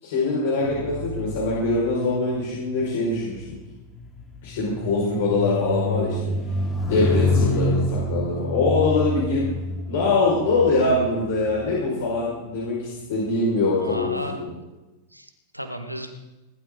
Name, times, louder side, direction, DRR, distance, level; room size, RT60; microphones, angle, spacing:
voice 1, 0.0-3.4 4.4-6.3 6.9-9.5 9.9-14.4, left 3 dB, 55° left, -5 dB, 5.7 m, -23 dB
sound 1, 0.6-12.2 13.0-13.3, left 2 dB, 15° left, 2.9 m, -28 dB
voice 2, 13.8-14.4 15.1-16.1, equal, 90° right, 6 dB, 1.8 m, -34 dB
20.0 x 12.5 x 4.0 m, 1.1 s
figure-of-eight pair, 90°, 0 cm